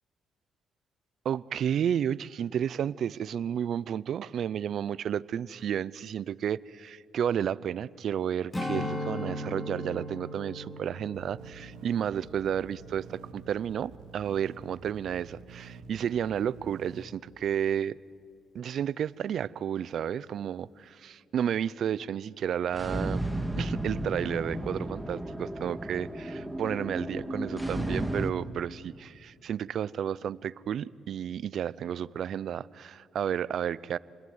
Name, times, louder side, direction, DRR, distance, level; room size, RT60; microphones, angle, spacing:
voice 1, 1.2-18.0 18.5-23.2 23.6-34.0, right 9 dB, 65° right, 0.6 m, -32 dB
Strum, 8.5-13.2 13.6-13.8, left 1 dB, 15° left, 3.3 m, -38 dB
sound 1, 11.1-17.0, right 5 dB, 90° right, 1.6 m, -49 dB
sound 2, 22.7-28.3, right 1 dB, 5° right, 2.0 m, -33 dB
28.5 x 21.0 x 9.5 m
cardioid pair, 90°, 0 cm